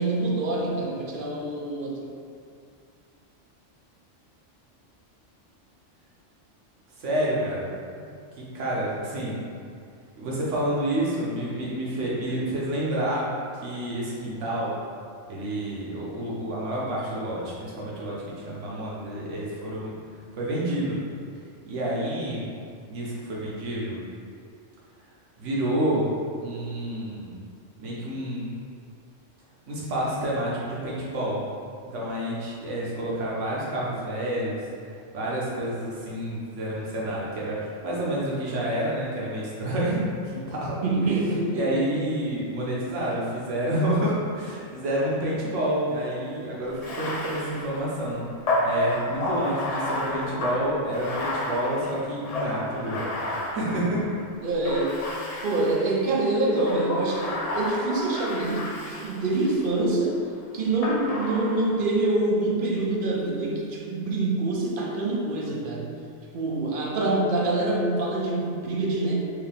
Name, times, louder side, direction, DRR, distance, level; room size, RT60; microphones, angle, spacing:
voice 1, 0.0-2.0 40.8-42.0 54.4-55.0 55.4-60.2 60.5-65.9 66.3-69.1, right 2 dB, 55° right, -2 dB, 0.7 m, -25 dB
voice 2, 7.0-7.7 8.4-9.4 10.2-13.3 13.6-14.8 15.3-19.9 20.4-21.0 21.7-22.4 22.9-24.0 25.4-26.1 26.4-27.4 27.8-28.5 29.7-31.4 31.9-34.6 35.1-40.8 41.5-48.2 48.6-53.1 53.5-54.1, right 1 dB, 75° right, -5 dB, 1.3 m, -29 dB
Bathtub (filling or washing), 46.7-54.1 54.6-55.9 56.5-59.7 60.8-61.8, left 1 dB, 55° left, 0.4 m, -31 dB
4.8 x 2.9 x 3.5 m, 2.3 s
omnidirectional pair, 1.3 m